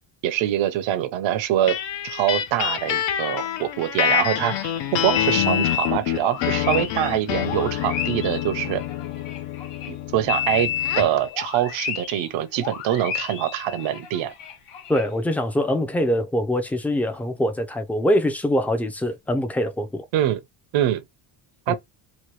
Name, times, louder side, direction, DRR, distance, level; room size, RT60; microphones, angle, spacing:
voice 1, 0.2-1.8 2.0-8.8 9.9-10.7 11.0-14.3 20.1-20.4 20.7-21.0 21.7-21.8, right 11 dB, 65° right, 0.7 m, -24 dB
sound 1, 1.7-11.2, left 10 dB, 60° left, 0.7 m, -27 dB
sound 2, 5.1-9.9 10.3-12.3 12.5-15.1, left 10 dB, 85° left, 1.2 m, -31 dB
voice 2, 14.9-20.0 21.7-21.8, equal, 5° left, 0.4 m, -23 dB
3.0 x 2.2 x 3.2 m
cardioid pair, 130°, 49 cm